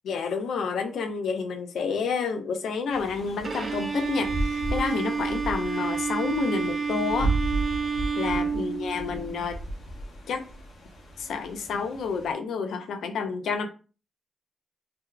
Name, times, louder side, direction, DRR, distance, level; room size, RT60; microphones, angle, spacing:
voice 1, 0.1-7.4 8.2-9.6 10.3-10.5 11.2-13.7, left 5 dB, 80° left, 7 dB, 0.5 m, -29 dB
sound 1, 2.9-12.3, right 2 dB, 65° left, 0.9 m, -34 dB
Bowed string instrument, 3.4-9.4, right 5 dB, 45° right, 0.6 m, -29 dB
2.9 x 2.1 x 3.7 m, 0.34 s
cardioid pair, 105°, 0 cm